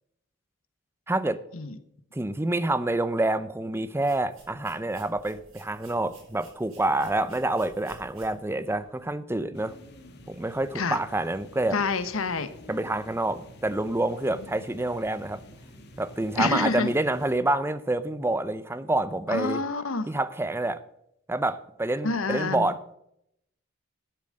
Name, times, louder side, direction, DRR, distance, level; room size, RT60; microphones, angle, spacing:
voice 1, 1.1-1.4 2.1-9.7 10.3-11.8 12.7-15.4 16.0-19.6 20.1-20.8 21.3-22.8, right 2 dB, 10° right, 14 dB, 0.6 m, -27 dB
sound 1, 3.9-9.1, right 2 dB, 80° right, 4.2 m, -55 dB
sound 2, 9.5-17.4, left 1 dB, 55° left, 1.6 m, -50 dB
voice 2, 11.7-12.5 16.4-16.9 19.3-20.1 22.0-22.7, left 3 dB, 80° left, 11 dB, 1.1 m, -27 dB
12.0 x 7.2 x 6.5 m, 0.76 s
head